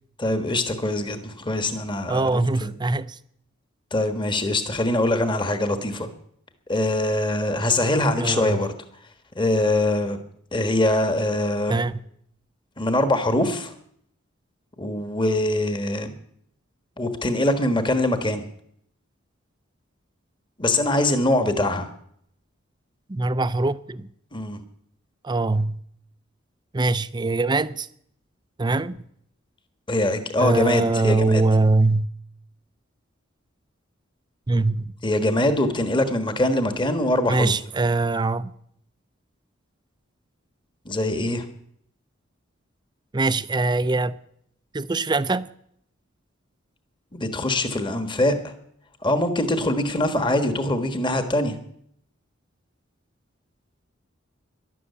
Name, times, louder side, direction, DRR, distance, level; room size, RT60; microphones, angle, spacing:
voice 1, 0.2-2.7 3.9-6.1 6.7-8.7 9.3-10.2 10.5-11.8 12.8-13.7 14.8-16.1 17.0-18.5 20.6-21.9 24.3-24.6 29.9-31.4 35.0-37.5 40.8-41.4 47.1-48.5 49.0-51.5, left 1 dB, 25° left, 1.4 m, -23 dB
voice 2, 2.1-3.2 8.2-8.6 11.7-12.0 23.1-24.1 25.2-25.8 26.7-27.9 28.6-29.0 30.4-32.1 34.5-34.9 37.3-38.5 43.1-44.2 44.7-45.5, right 3 dB, 20° right, 0.5 m, -22 dB
12.5 x 11.5 x 8.3 m
head